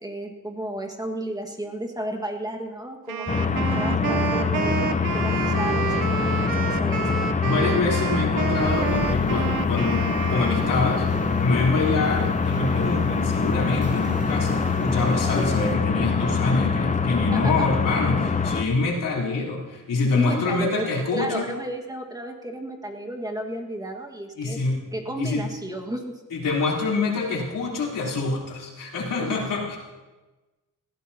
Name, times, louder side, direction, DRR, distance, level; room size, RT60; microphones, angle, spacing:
voice 1, 0.0-5.9 6.5-7.1 7.7-8.2 17.3-17.7 20.1-24.6 24.9-26.2 29.2-29.4, right 1 dB, 10° right, 2 dB, 1.6 m, -33 dB
Wind instrument woodwind instrument, 3.1-11.2, right 9 dB, 90° right, 0.8 m, -30 dB
sound 1, 3.3-18.6, left 5 dB, 25° left, 0.7 m, -24 dB
voice 2, 7.4-11.1 11.4-21.4 24.4-24.8 25.2-25.5 26.3-29.8, left 3 dB, 80° left, -4 dB, 3.5 m, -26 dB
sound 2, 8.2-15.7, right 2 dB, 50° right, 3.4 m, -39 dB
21.0 x 15.0 x 2.8 m, 1.2 s
wide cardioid pair, 120°, 32 cm